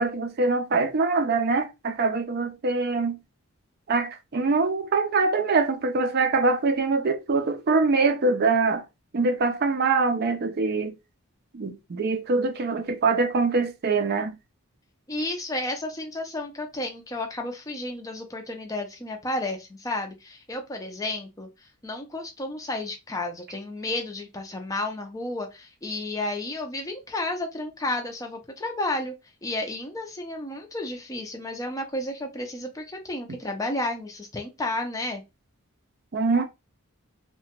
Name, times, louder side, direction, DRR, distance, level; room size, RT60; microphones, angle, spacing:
voice 1, 0.0-3.2 3.9-8.8 9.1-10.9 11.5-14.3 36.1-36.4, right 3 dB, 45° right, 0.4 m, -24 dB
voice 2, 15.1-29.1 29.4-35.2, left 2 dB, 15° left, 0.4 m, -32 dB
2.8 x 2.1 x 2.8 m
head